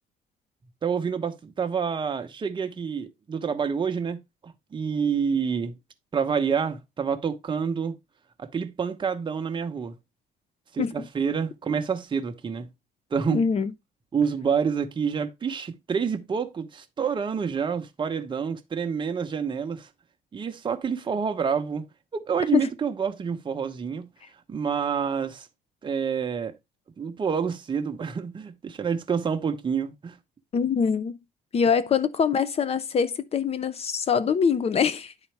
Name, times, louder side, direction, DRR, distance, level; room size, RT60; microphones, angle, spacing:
voice 1, 0.8-5.8 6.1-7.9 8.4-10.0 10.7-12.7 13.1-13.4 14.1-19.9 20.3-24.1 24.5-25.5 25.8-26.5 27.0-30.2, right 6 dB, 30° right, 0.9 m, -28 dB
voice 2, 13.3-13.7 22.5-22.7 30.5-31.2 31.5-35.1, left 6 dB, 35° left, 0.7 m, -23 dB
10.0 x 4.1 x 3.3 m
cardioid pair, 110°, 17 cm